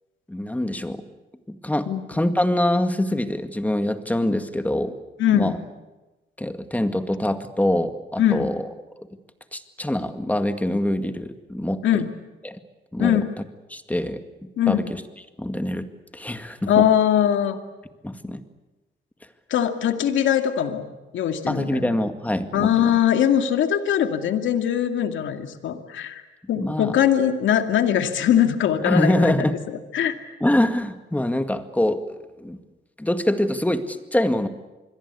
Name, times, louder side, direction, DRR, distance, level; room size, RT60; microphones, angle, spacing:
voice 1, 0.3-1.0 1.5-5.0 5.3-5.6 6.4-8.6 9.5-12.0 12.4-12.6 12.9-13.2 13.7-14.2 14.7-15.0 15.4-15.9 16.1-16.9 18.0-18.4 21.5-22.9 26.6-27.0 28.8-29.5 30.4-32.6 33.0-34.5, left 1 dB, 10° left, 8 dB, 2.0 m, -24 dB
voice 2, 5.2-5.5 8.2-8.5 11.8-12.1 13.0-13.3 14.6-14.9 16.7-17.6 19.5-20.8 21.1-21.9 22.5-26.2 26.5-29.3 29.9-30.1, left 10 dB, 75° left, 7 dB, 2.3 m, -21 dB
26.0 x 22.0 x 8.4 m, 1.1 s
cardioid pair, 90°, 20 cm